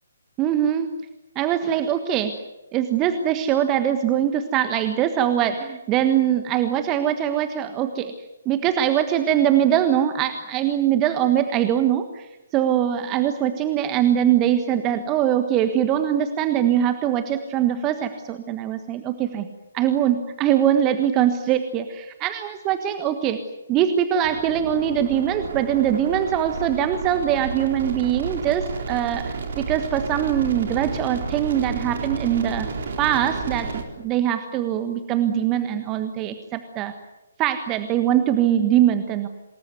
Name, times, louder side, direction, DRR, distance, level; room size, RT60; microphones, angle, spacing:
voice 1, 0.4-0.9 1.3-2.3 2.7-8.1 8.4-12.3 12.5-19.5 19.7-23.4 23.7-29.2 29.6-32.7 33.0-36.9 37.4-39.3, right 10 dB, 20° right, 9 dB, 1.4 m, -22 dB
sound 1, 24.2-33.8, right 4 dB, 45° right, 4.0 m, -31 dB
27.0 x 20.5 x 9.5 m, 1.0 s
figure-of-eight pair, 135°, 0 cm